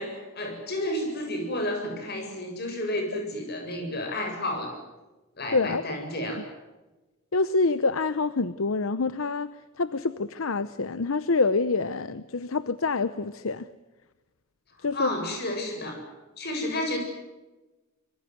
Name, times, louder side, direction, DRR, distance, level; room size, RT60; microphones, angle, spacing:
voice 1, 0.0-4.8 5.4-6.5 14.8-16.0 16.4-17.0, left 1 dB, 50° left, 7.7 m, -31 dB
voice 2, 5.5-5.8 7.3-9.5 9.8-13.6 14.8-15.1, left 3 dB, 70° left, 0.8 m, -26 dB
25.5 x 23.5 x 8.0 m
head